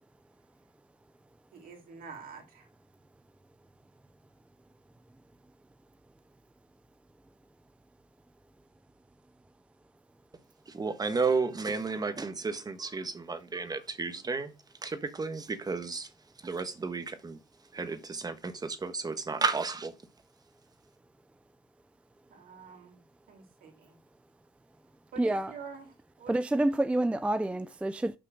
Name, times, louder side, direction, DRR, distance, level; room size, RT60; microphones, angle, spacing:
voice 1, 1.5-2.7 22.3-23.0 23.3-24.0 25.1-26.4, right 5 dB, 60° right, 3.1 m, -47 dB
voice 2, 10.7-14.5 14.8-17.4 17.7-19.9, right 4 dB, 25° right, 1.4 m, -33 dB
voice 3, 25.2-25.5 26.3-28.2, right 1 dB, 5° right, 0.4 m, -28 dB
6.4 x 5.7 x 6.4 m
cardioid pair, 110°, 17 cm